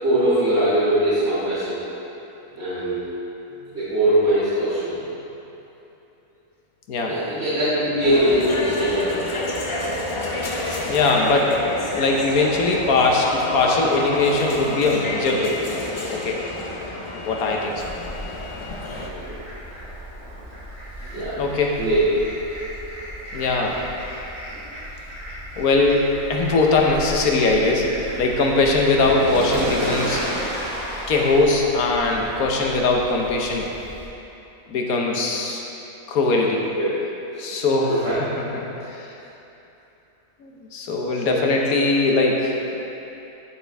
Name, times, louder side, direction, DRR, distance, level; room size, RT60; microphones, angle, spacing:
voice 1, 0.0-1.8 2.5-3.0 3.7-4.9 7.0-9.2 19.0-19.4 21.1-21.4 21.7-22.1 36.7-36.9 37.3-37.5 37.9-38.2 41.2-41.4, right 1 dB, 50° right, -16 dB, 2.2 m, -21 dB
sound 1, 8.0-19.1, left 2 dB, 50° left, 0.3 m, -29 dB
voice 2, 10.9-11.5 11.9-15.8 16.1-16.4 17.2-17.8 21.4-21.8 23.3-23.8 25.6-27.9 28.2-30.2 31.1-33.7 34.7-35.6 36.1-36.6 37.4-38.0 38.5-38.6 38.9-39.1 40.4-42.7, left 3 dB, 80° left, 0 dB, 1.3 m, -20 dB
Fowl, 17.7-34.0, equal, 90° right, 2.4 m, -34 dB
12.5 x 4.4 x 3.4 m, 3.0 s
omnidirectional pair, 1.5 m